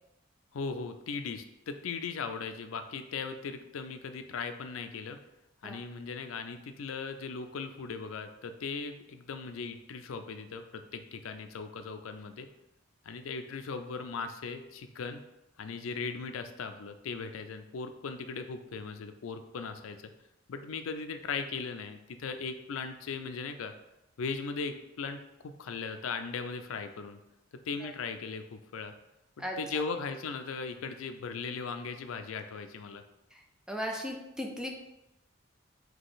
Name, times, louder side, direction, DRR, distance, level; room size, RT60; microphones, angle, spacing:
voice 1, 0.5-5.2 5.6-12.5 13.0-15.2 15.6-20.1 20.5-23.7 24.2-27.2 27.6-28.9 29.4-33.0, left 5 dB, 85° left, 8 dB, 0.4 m, -38 dB
voice 2, 33.7-34.7, equal, 5° right, 1 dB, 0.4 m, -36 dB
3.8 x 2.8 x 3.9 m, 0.91 s
head